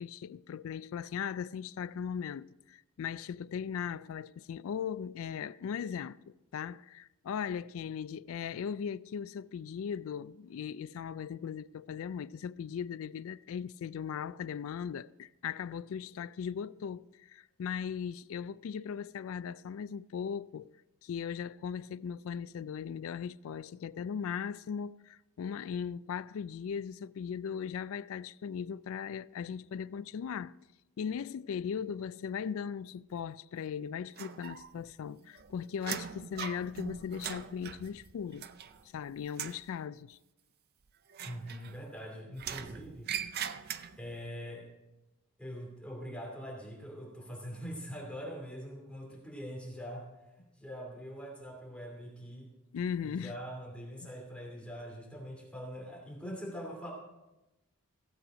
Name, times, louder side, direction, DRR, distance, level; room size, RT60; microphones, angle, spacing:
voice 1, 0.0-20.7 21.0-30.6 31.0-38.5 38.9-40.2 52.7-53.4 54.0-54.1, left 7 dB, 65° left, 0.3 m, -38 dB
sound 1, 34.2-34.9 35.2-39.0 39.3-39.7 41.1-42.0 42.4-44.2, right 8 dB, 45° right, 0.5 m, -41 dB
voice 2, 41.2-43.1 44.0-44.7 45.4-50.1 50.4-52.5 53.0-56.9, equal, 5° left, 2.7 m, -43 dB
15.5 x 7.9 x 5.0 m
head